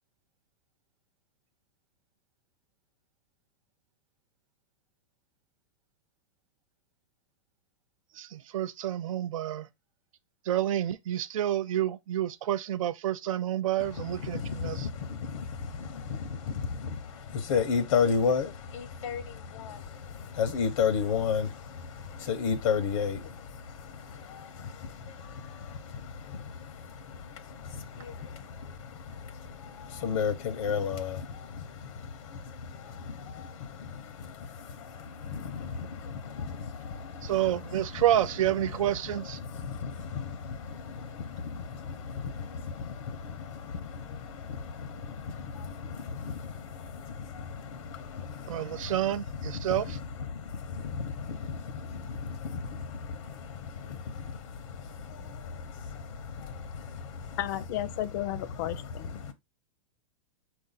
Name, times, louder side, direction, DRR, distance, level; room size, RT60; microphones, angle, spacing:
voice 1, 8.2-9.7 10.5-14.9 37.2-39.4 48.5-50.0, right 12 dB, 90° right, 0.4 m, -29 dB
voice 2, 14.3-17.0 17.3-19.8 20.2-21.8 22.1-23.3 24.2-24.7 25.0-26.5 27.1-27.2 27.7-28.4 29.2-29.3 29.6-31.5 32.3-32.4 32.7-34.7 34.9-37.3 39.5-48.9 50.3-54.4 54.7-54.8 55.1-55.5 56.4-57.3 59.3-59.4, left 6 dB, 85° left, 0.7 m, -33 dB
voice 3, 57.4-59.2, left 13 dB, 35° left, 0.4 m, -33 dB
4.5 x 2.5 x 3.9 m
supercardioid pair, 170°, 17 cm